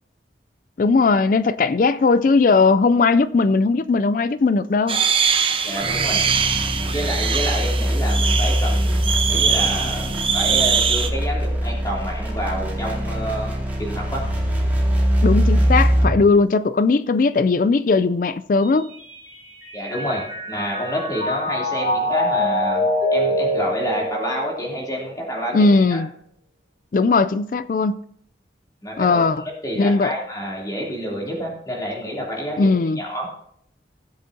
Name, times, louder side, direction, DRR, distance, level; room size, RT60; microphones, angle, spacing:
voice 1, 0.8-5.0 15.2-18.9 25.5-26.1 26.9-28.0 29.0-29.4 29.8-30.1 32.6-33.0, left 4 dB, 45° left, 0.3 m, -18 dB
sound 1, 4.9-11.1, right 6 dB, 30° right, 0.9 m, -22 dB
voice 2, 5.6-6.2 6.9-14.3 19.7-26.0 28.8-32.7 33.0-33.3, equal, 20° left, 3.1 m, -29 dB
sound 2, 5.8-16.3, equal, 10° right, 2.3 m, -22 dB
Mallet percussion, 18.6-25.1, left 1 dB, 60° left, 4.6 m, -25 dB
16.5 x 7.7 x 2.8 m
head